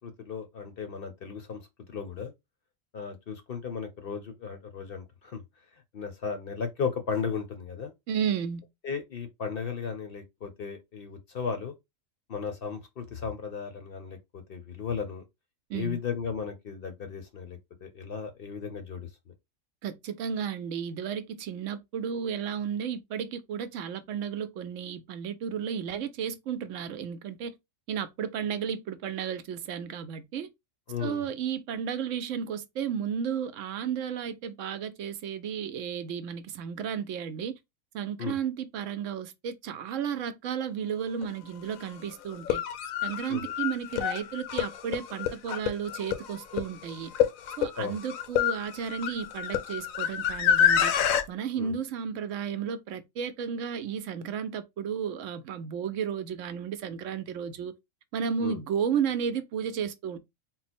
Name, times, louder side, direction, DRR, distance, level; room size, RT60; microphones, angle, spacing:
voice 1, 0.0-1.6 1.9-2.3 2.9-5.4 5.9-7.9 8.8-11.7 12.3-15.2 15.7-19.1 30.9-31.3 38.2-38.4 43.3-43.4 47.8-48.0 51.6-51.7 58.4-58.6, left 6 dB, 55° left, 0.7 m, -35 dB
voice 2, 8.1-8.6 15.7-16.0 19.8-27.5 27.9-30.5 31.0-37.6 37.9-42.6 43.0-47.1 47.6-50.9 51.3-57.7 58.1-60.2, right 7 dB, 75° right, 0.9 m, -33 dB
sound 1, 41.2-41.3 42.3-51.2, left 9 dB, 85° left, 1.0 m, -27 dB
3.9 x 2.0 x 4.1 m
omnidirectional pair, 1.4 m